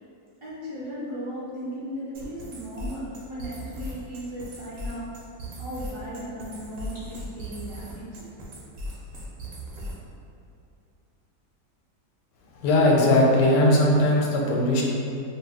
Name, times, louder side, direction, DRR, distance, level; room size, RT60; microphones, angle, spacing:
voice 1, 0.4-5.0 5.5-8.2, equal, 45° right, -11 dB, 0.4 m, -36 dB
sound 1, 2.1-10.1, equal, 65° right, 1.0 m, -38 dB
voice 2, 12.6-14.8, left 1 dB, 85° left, -2 dB, 1.2 m, -19 dB
2.8 x 2.1 x 3.5 m, 2.6 s
omnidirectional pair, 1.8 m